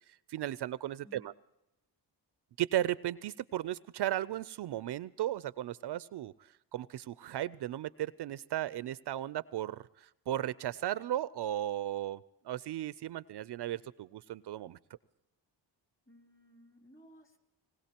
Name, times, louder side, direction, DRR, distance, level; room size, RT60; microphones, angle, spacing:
voice 1, 0.0-1.3 2.6-6.3 6.7-14.8, right 13 dB, 60° right, 17 dB, 0.5 m, -36 dB
voice 2, 16.1-17.4, equal, 25° left, 3 dB, 3.6 m, -58 dB
20.0 x 19.5 x 2.9 m, 0.91 s
cardioid pair, 85°, 45 cm